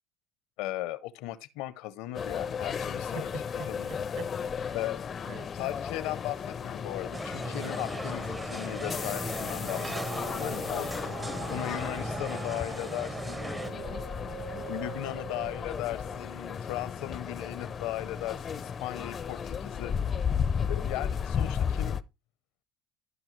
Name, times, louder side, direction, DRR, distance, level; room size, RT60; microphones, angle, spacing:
voice 1, 0.6-3.3 3.7-3.9 4.7-5.0 5.5-11.1 11.5-13.5 14.5-19.9 20.7-22.0, left 15 dB, 75° left, 0.7 m, -37 dB
sound 1, 2.1-22.0, left 7 dB, 35° left, 0.5 m, -34 dB
voice 2, 3.1-4.3 4.6-4.9 5.2-5.5 13.6-14.1 14.5-14.7, right 5 dB, 45° right, 1.0 m, -44 dB
sound 2, 5.5-5.8 6.2-18.6 19.2-19.3, right 10 dB, 75° right, 0.6 m, -46 dB
sound 3, 7.1-13.7, right 2 dB, 15° right, 0.7 m, -38 dB
14.0 x 5.5 x 3.2 m
supercardioid pair, 100°, 0 cm